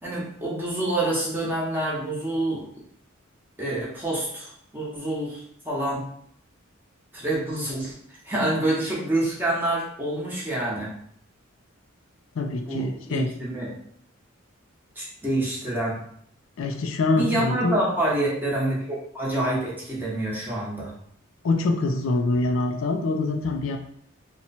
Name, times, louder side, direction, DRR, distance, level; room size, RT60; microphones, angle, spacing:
voice 1, 0.0-2.7 3.6-6.0 7.1-10.9 12.7-13.7 15.0-16.0 17.1-20.9, right 1 dB, 10° right, -6 dB, 0.9 m, -27 dB
voice 2, 12.4-13.3 16.6-17.8 21.4-23.8, left 2 dB, 70° left, 5 dB, 0.4 m, -25 dB
2.9 x 2.2 x 4.0 m, 0.66 s
head